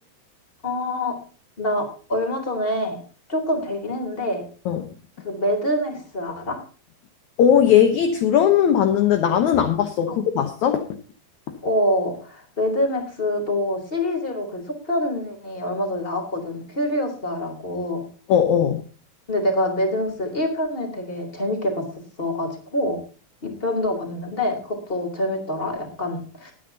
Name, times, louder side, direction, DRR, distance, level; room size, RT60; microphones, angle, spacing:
voice 1, 0.6-1.1 1.6-1.8 2.1-3.0 3.3-4.5 5.2-6.6 10.1-10.2 11.6-18.0 19.3-21.9 22.2-23.0 23.4-26.5, left 1 dB, 15° left, 3 dB, 3.3 m, -25 dB
voice 2, 7.4-10.9 18.3-18.8, left 9 dB, 65° left, 7 dB, 2.0 m, -18 dB
21.5 x 9.4 x 2.8 m, 0.37 s
omnidirectional pair, 4.5 m